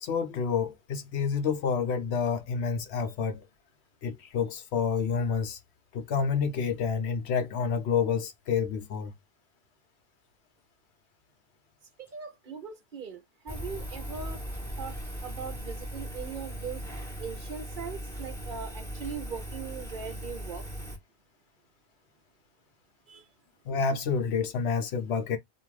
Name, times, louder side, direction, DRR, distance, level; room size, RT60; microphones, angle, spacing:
voice 1, 0.0-3.4 4.0-5.6 5.9-9.1 23.6-25.4, left 6 dB, 80° left, 0.9 m, -29 dB
voice 2, 12.0-14.4 14.8-14.9 15.2-16.8 17.2-20.6 23.1-23.2, right 6 dB, 55° right, 0.7 m, -40 dB
Engine, 13.5-21.0, equal, ahead, 1.1 m, -38 dB
2.5 x 2.4 x 3.0 m
omnidirectional pair, 1.1 m